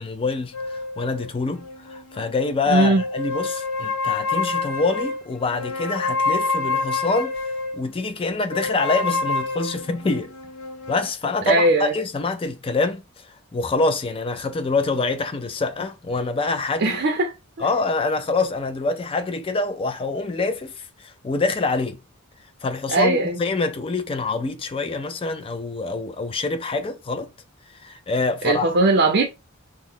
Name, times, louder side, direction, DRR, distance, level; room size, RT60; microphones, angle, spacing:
voice 1, 0.0-7.4 7.7-10.3 10.9-17.0 17.6-22.0 22.6-27.3 27.7-28.7, left 3 dB, 25° left, 0.3 m, -25 dB
sound 1, 0.5-2.6 3.0-7.8 8.5-11.1, left 3 dB, 70° left, 0.7 m, -27 dB
voice 2, 2.7-3.0 11.5-11.9 16.8-17.7 22.9-23.4 28.4-29.3, right 2 dB, 50° right, 0.5 m, -19 dB
2.9 x 2.0 x 3.6 m
head